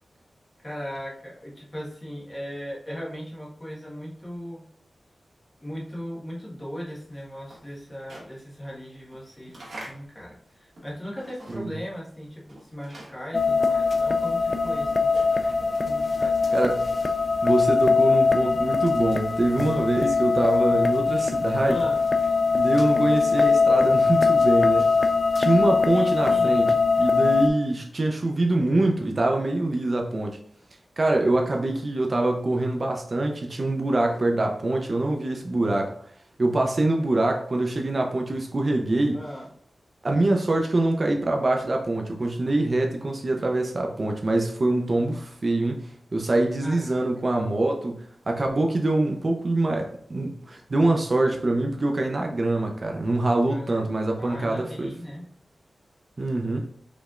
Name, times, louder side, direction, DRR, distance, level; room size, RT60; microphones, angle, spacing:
voice 1, 0.6-4.6 5.6-16.5 21.6-22.0 25.9-26.6 39.1-39.5 46.6-47.1 53.4-53.9 54.2-55.2, equal, 20° left, -5 dB, 1.4 m, -38 dB
sound 1, 7.0-11.9 12.2-16.6, right 1 dB, 85° right, 1.5 m, -47 dB
sound 2, 13.3-27.5, left 4 dB, 40° left, 0.3 m, -22 dB
voice 2, 16.5-16.8 17.4-21.8 22.5-24.9 25.4-30.4 31.0-35.9 36.4-39.2 40.0-54.9 56.2-56.6, right 2 dB, 45° right, 2 dB, 0.6 m, -24 dB
5.0 x 3.3 x 2.4 m, 0.64 s
wide cardioid pair, 105°, 0 cm